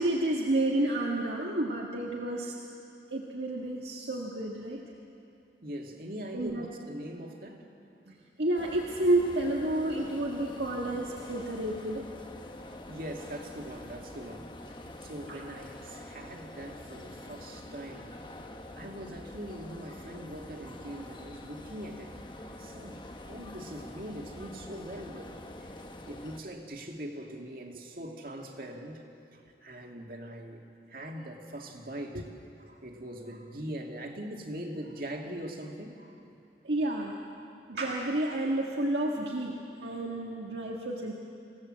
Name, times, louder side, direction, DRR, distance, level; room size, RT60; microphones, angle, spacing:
voice 1, 0.0-2.5 3.1-4.8 6.3-6.7 8.1-12.1 15.3-15.4 36.6-37.2 37.7-41.1, right 1 dB, 75° right, -2 dB, 1.7 m, -30 dB
voice 2, 5.6-7.7 12.7-18.1 18.8-22.2 22.6-25.3 25.6-25.7 26.1-29.0 29.3-32.3 32.6-36.2, right 1 dB, 55° right, 2 dB, 2.3 m, -42 dB
sound 1, 8.5-26.4, left 1 dB, 25° left, 1.1 m, -46 dB
27.5 x 17.0 x 7.6 m, 2.7 s
head